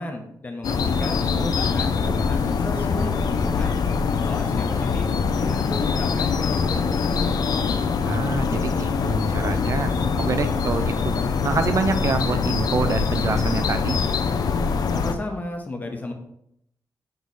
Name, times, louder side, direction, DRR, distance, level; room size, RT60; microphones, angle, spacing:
voice 1, 0.0-3.8 4.2-7.4 14.8-16.1, left 2 dB, 25° left, 3 dB, 0.9 m, -34 dB
sound 1, 0.6-15.1, left 5 dB, 65° left, 0.5 m, -23 dB
voice 2, 8.0-11.1 11.4-14.0, right 5 dB, 45° right, 9 dB, 0.4 m, -26 dB
8.0 x 3.2 x 4.0 m, 0.75 s
wide cardioid pair, 165°, 7 cm